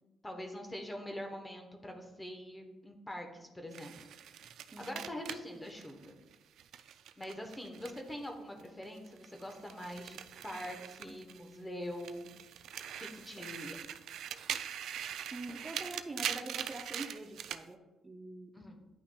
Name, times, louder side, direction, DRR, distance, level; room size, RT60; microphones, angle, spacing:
voice 1, 0.2-3.9 4.8-6.2 7.2-12.3 13.0-13.7 18.5-18.9, left 1 dB, 15° left, 2 dB, 1.0 m, -44 dB
sound 1, 3.7-8.3 8.6-11.6 11.9-17.6, right 9 dB, 75° right, 0.3 m, -42 dB
voice 2, 4.7-5.2 15.3-18.5, right 2 dB, 25° right, 0 dB, 0.6 m, -45 dB
9.8 x 5.7 x 2.2 m, 1.1 s
cardioid pair, 90°, 0 cm